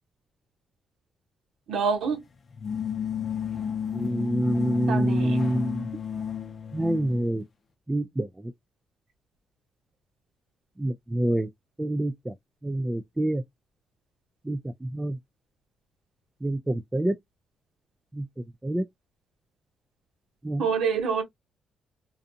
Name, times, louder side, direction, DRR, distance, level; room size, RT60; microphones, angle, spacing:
voice 1, 1.7-2.2 4.9-5.4 20.6-21.2, right 5 dB, 75° right, 1.0 m, -26 dB
sound 1, 2.5-7.3, left 8 dB, 45° left, 0.6 m, -32 dB
voice 2, 3.9-5.9 6.7-7.4 7.9-8.3 10.8-11.5 11.8-12.3 12.6-13.4 14.5-15.2 16.4-17.1 18.1-18.3 18.6-18.8 20.4-20.7, right 1 dB, 10° right, 0.3 m, -26 dB
2.5 x 2.4 x 2.6 m
cardioid pair, 85°, 0 cm